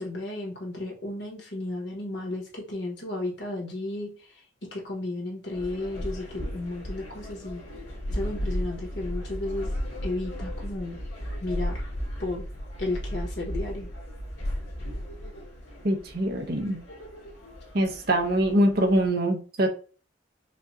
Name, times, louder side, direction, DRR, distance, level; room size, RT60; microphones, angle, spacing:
voice 1, 0.0-7.6 8.1-9.7 10.0-11.0 11.4-11.8 12.2-12.5 12.8-13.9, left 2 dB, 60° left, -1 dB, 1.4 m, -33 dB
sound 1, 5.5-19.1, equal, 80° left, 1.9 m, -35 dB
voice 2, 15.8-16.8 17.7-19.7, right 1 dB, 50° right, 2 dB, 0.9 m, -24 dB
5.2 x 2.5 x 2.7 m, 0.36 s
head